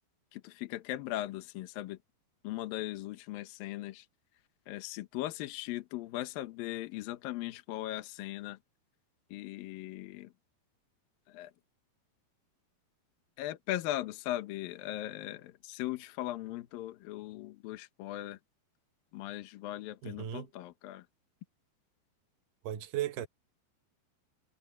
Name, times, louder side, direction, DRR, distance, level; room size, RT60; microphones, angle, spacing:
voice 1, 0.3-2.0 2.4-4.1 4.7-8.6 9.3-10.3 11.3-11.5 13.4-18.4 19.1-21.1, left 15 dB, 75° left, 2.2 m, -39 dB
voice 2, 20.0-20.5 22.6-23.3, right 11 dB, 85° right, 1.9 m, -36 dB
omnidirectional pair, 5.6 m